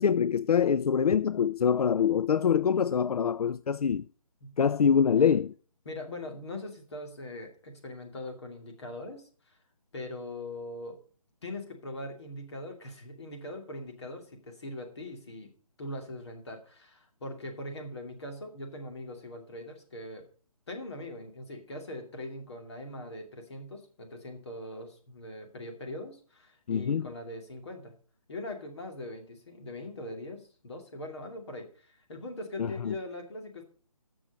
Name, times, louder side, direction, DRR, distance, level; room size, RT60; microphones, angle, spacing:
voice 1, 0.0-4.0 4.6-5.5 26.7-27.1 32.6-32.9, left 7 dB, 80° left, 0.4 m, -25 dB
voice 2, 5.8-9.6 9.9-11.0 11.4-15.5 15.8-20.3 20.7-27.9 28.3-33.6, left 1 dB, 45° left, 2.5 m, -41 dB
14.5 x 6.2 x 5.1 m
hypercardioid pair, 170°, 19 cm